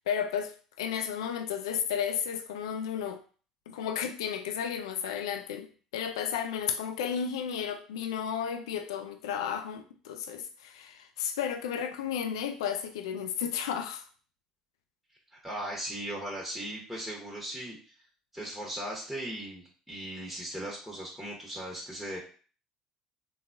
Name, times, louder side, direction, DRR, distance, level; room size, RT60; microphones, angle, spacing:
voice 1, 0.1-0.5 0.8-3.2 3.7-14.0, left 8 dB, 75° left, 0.3 m, -33 dB
voice 2, 15.4-17.9 18.3-22.2, right 1 dB, 5° right, 1.1 m, -38 dB
3.8 x 2.2 x 2.6 m
figure-of-eight pair, 60°, 3 cm